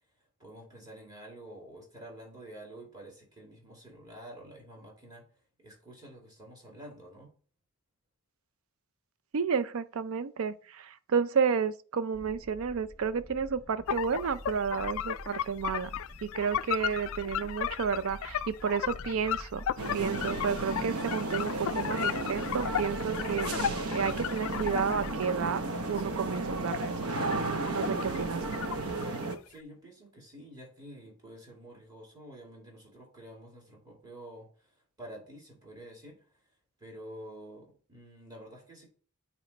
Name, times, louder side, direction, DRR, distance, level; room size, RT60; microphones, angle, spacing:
voice 1, 0.4-5.3 5.6-7.3 29.4-36.4 36.8-38.9, right 1 dB, 20° right, 2.4 m, -49 dB
voice 2, 9.3-19.6 19.9-25.6 25.9-27.4 27.7-28.4, right 6 dB, 65° right, 0.4 m, -31 dB
sound 1, 12.1-29.0, equal, 10° left, 1.3 m, -48 dB
sound 2, 13.9-25.3 25.7-28.3 28.5-29.3, left 9 dB, 65° left, 0.3 m, -35 dB
sound 3, 19.8-29.4, right 2 dB, 80° right, 0.8 m, -34 dB
9.0 x 3.1 x 4.1 m
head